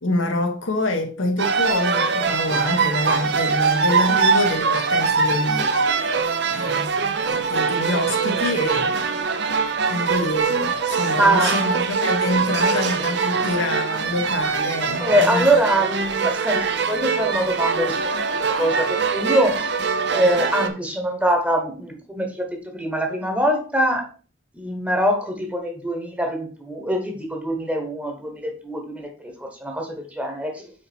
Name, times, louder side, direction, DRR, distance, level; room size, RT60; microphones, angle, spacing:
voice 1, 0.0-5.8 6.2-9.0 9.9-15.4, left 1 dB, 90° left, 1.4 m, -26 dB
sound 1, 1.4-20.7, right 5 dB, 60° right, 0.6 m, -22 dB
voice 2, 11.1-11.6 15.0-18.0 18.6-19.7 20.1-24.0 24.5-30.7, right 1 dB, 5° right, 1.1 m, -23 dB
5.2 x 4.2 x 4.4 m
head